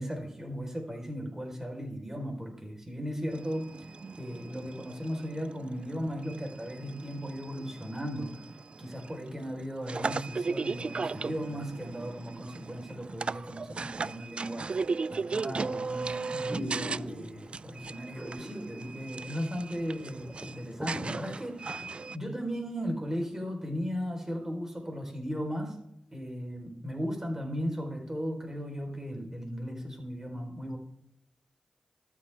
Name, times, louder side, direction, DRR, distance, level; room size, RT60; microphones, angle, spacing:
voice 1, 0.0-3.9 4.2-14.7 15.1-21.8 22.1-25.8 26.1-30.8, equal, 20° right, 2 dB, 4.4 m, -36 dB
sound 1, 3.3-22.2, right 4 dB, 55° right, 0.3 m, -37 dB
sound 2, 15.4-15.6 16.1-16.2 16.5-17.5 18.1-18.8 19.1-19.2 19.7-19.8 20.1-21.9 22.4-22.5, equal, ahead, 3.7 m, -39 dB
13.0 x 8.6 x 3.6 m, 0.75 s
cardioid pair, 40°, 2 cm